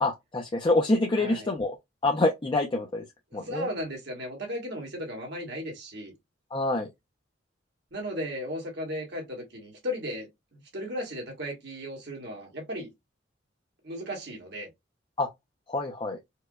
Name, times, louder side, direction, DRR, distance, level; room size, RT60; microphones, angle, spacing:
voice 1, 0.0-1.7 2.0-3.0 3.3-3.7 6.5-6.9 15.2-15.3 15.7-16.2, left 2 dB, 25° left, 0.5 m, -26 dB
voice 2, 1.2-1.5 3.3-6.1 7.9-12.9 13.8-14.7, equal, 60° right, 1.6 m, -36 dB
4.6 x 2.2 x 2.2 m
head